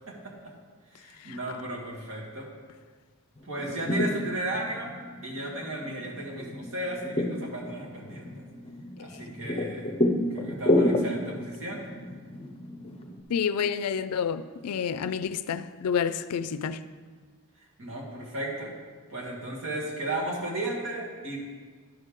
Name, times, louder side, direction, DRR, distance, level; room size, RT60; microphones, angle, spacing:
voice 1, 0.9-2.5 3.4-4.9 5.2-8.4 9.0-9.9 10.3-11.8 17.8-18.7 19.1-21.4, right 1 dB, 60° right, 2.0 m, -35 dB
sound 1, 3.4-13.2, left 1 dB, 25° left, 0.7 m, -30 dB
voice 2, 13.3-16.8, left 7 dB, 85° left, 0.4 m, -29 dB
11.5 x 6.6 x 3.6 m
head